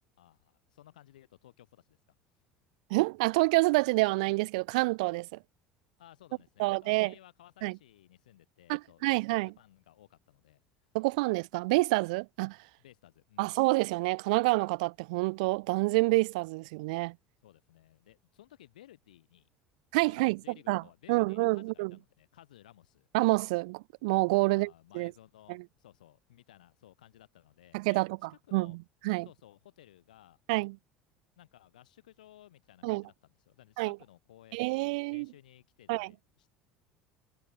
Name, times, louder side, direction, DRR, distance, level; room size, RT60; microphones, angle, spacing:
voice 1, 0.2-2.0 6.0-10.6 12.8-13.5 17.4-19.5 20.0-23.1 24.5-28.0 28.3-28.8 29.2-30.4 31.4-33.1 33.5-36.5, left 13 dB, 75° left, 4.5 m, -58 dB
voice 2, 2.9-5.4 6.6-7.1 7.6-7.8 8.7-9.5 10.9-12.6 13.4-17.2 19.9-20.4 20.7-20.8 21.1-21.9 23.1-25.1 25.5-25.6 27.7-28.1 28.5-28.8 29.0-29.3 30.5-30.8 32.8-33.0 33.8-34.0 34.5-35.3 35.9-36.1, right 25 dB, 65° right, 0.6 m, -28 dB
figure-of-eight pair, 70°, 4 cm